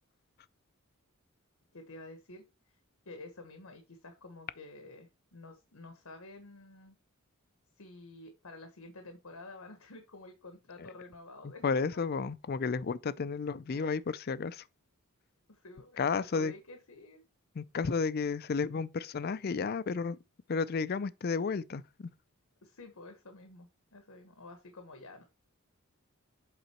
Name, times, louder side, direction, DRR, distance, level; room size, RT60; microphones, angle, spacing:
voice 1, 1.7-2.5 3.0-7.0 7.8-11.8 13.7-14.0 15.5-17.2 22.6-25.2, left 2 dB, 85° left, 1.2 m, -50 dB
voice 2, 11.6-14.6 16.0-16.5 17.6-20.2 20.5-22.1, left 5 dB, 45° left, 0.4 m, -32 dB
8.1 x 3.8 x 4.3 m
head